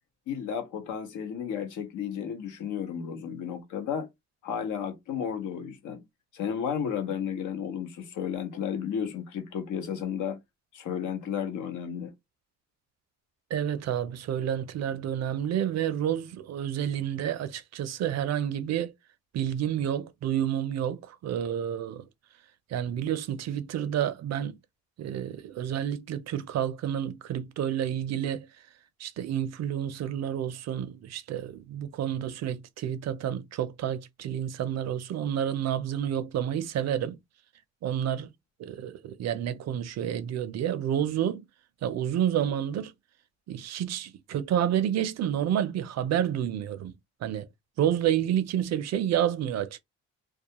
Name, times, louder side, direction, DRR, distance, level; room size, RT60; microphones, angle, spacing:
voice 1, 0.3-4.1 4.4-6.0 6.3-10.4 10.7-12.1, left 8 dB, 80° left, 0.9 m, -33 dB
voice 2, 13.5-18.9 19.3-22.1 22.7-24.5 25.0-28.5 29.0-37.2 37.8-38.3 38.6-41.4 41.8-42.9 43.5-46.9 47.2-47.5 47.8-49.8, right 10 dB, 60° right, 0.5 m, -29 dB
2.3 x 2.3 x 2.8 m
cardioid pair, 90°, 30 cm